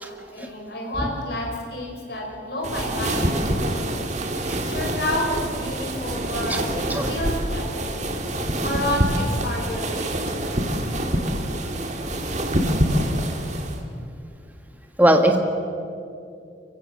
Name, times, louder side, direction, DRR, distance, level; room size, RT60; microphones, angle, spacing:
voice 1, 0.0-3.8 4.6-8.0 8.6-10.4, left 1 dB, 60° left, 0 dB, 5.0 m, -30 dB
sound 1, 2.6-13.8, right 1 dB, 40° right, 1.7 m, -26 dB
voice 2, 15.0-15.4, right 1 dB, 10° right, 4 dB, 1.4 m, -17 dB
25.0 x 15.5 x 7.5 m, 2.5 s
head